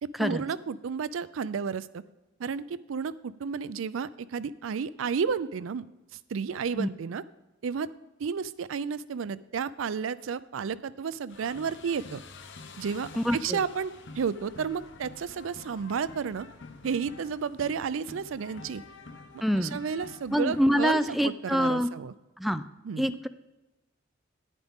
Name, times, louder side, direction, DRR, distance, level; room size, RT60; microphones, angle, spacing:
voice 1, 0.0-2.0 2.4-5.8 6.3-7.2 7.6-7.9 8.2-12.2 12.8-16.5 16.8-18.8 19.3-22.1 22.8-23.2, right 6 dB, 80° right, 17 dB, 0.4 m, -32 dB
sound 1, 11.3-21.0, left 3 dB, 65° left, 0.8 m, -48 dB
voice 2, 13.2-13.6 19.4-19.8 20.3-21.9 22.4-22.6 23.0-23.3, equal, ahead, 11 dB, 0.3 m, -26 dB
10.0 x 9.2 x 3.6 m, 1.1 s
head